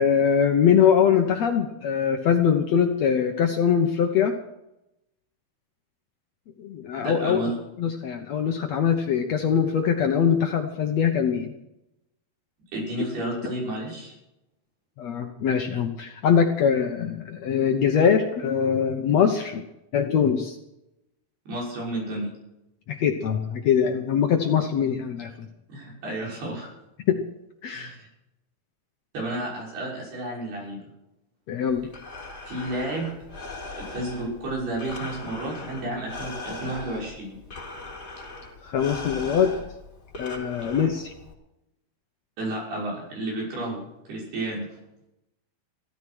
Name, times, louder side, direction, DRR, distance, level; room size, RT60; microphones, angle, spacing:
voice 1, 0.0-4.3 6.6-7.4 7.8-11.5 15.0-19.6 19.9-20.6 22.9-25.3 27.1-27.2 27.6-27.9 31.5-31.9 38.6-39.5 40.2-41.1, left 7 dB, 65° left, 4 dB, 1.8 m, -22 dB
voice 2, 7.0-7.6 12.7-14.1 21.5-22.3 25.7-26.7 27.7-28.1 29.1-30.8 32.5-33.1 33.8-37.4 42.4-44.7, right 1 dB, 90° right, -3 dB, 8.2 m, -31 dB
Breathing, 31.7-41.3, left 2 dB, 25° left, 3.8 m, -39 dB
16.0 x 13.5 x 6.2 m, 0.89 s
omnidirectional pair, 4.4 m